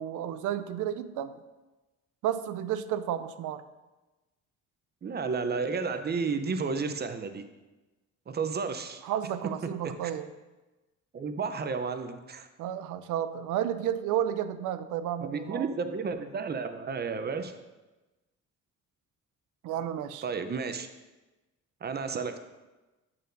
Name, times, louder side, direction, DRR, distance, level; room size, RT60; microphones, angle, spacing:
voice 1, 0.0-1.4 2.2-3.6 9.0-10.3 12.6-15.7 19.6-20.2, right 10 dB, 85° right, 12 dB, 0.5 m, -32 dB
voice 2, 5.0-7.4 8.3-9.0 9.6-10.1 11.1-12.5 15.2-17.5 20.2-20.9 21.8-22.4, right 5 dB, 35° right, 8 dB, 0.6 m, -32 dB
8.7 x 6.7 x 2.6 m, 1.1 s
cardioid pair, 90°, 30 cm